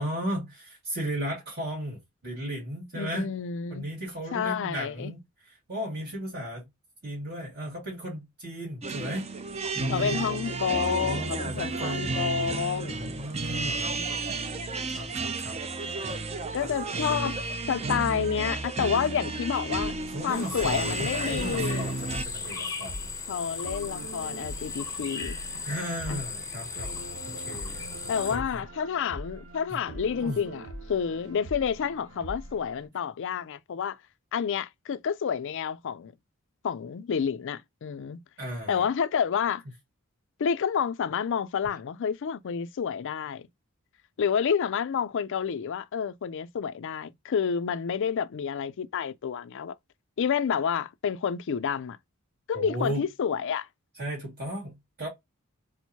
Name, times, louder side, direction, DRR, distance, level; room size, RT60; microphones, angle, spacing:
voice 1, 0.0-3.3 3.7-6.7 7.0-9.3 9.7-10.2 11.0-12.2 12.9-14.4 14.9-15.6 16.6-17.4 20.1-23.2 25.6-26.9 27.4-28.6 29.7-29.8 30.2-30.4 38.4-38.8 52.5-53.1 54.0-55.1, equal, 50° right, 2.1 m, -36 dB
voice 2, 2.9-3.8 4.3-5.1 9.9-13.1 13.5-14.1 16.5-17.4 17.7-20.0 20.2-21.9 23.3-25.4 26.1-26.2 28.1-30.6 30.9-34.0 34.3-36.1 36.6-38.2 38.7-39.6 40.4-43.4 44.2-49.8 50.2-52.0 52.5-53.7, left 7 dB, 60° left, 0.4 m, -29 dB
sound 1, 8.8-22.2, right 3 dB, 30° right, 0.6 m, -32 dB
sound 2, 19.6-32.9, right 1 dB, 80° right, 1.1 m, -43 dB
sound 3, 20.3-28.4, left 5 dB, 15° left, 0.7 m, -37 dB
4.4 x 2.1 x 2.8 m
head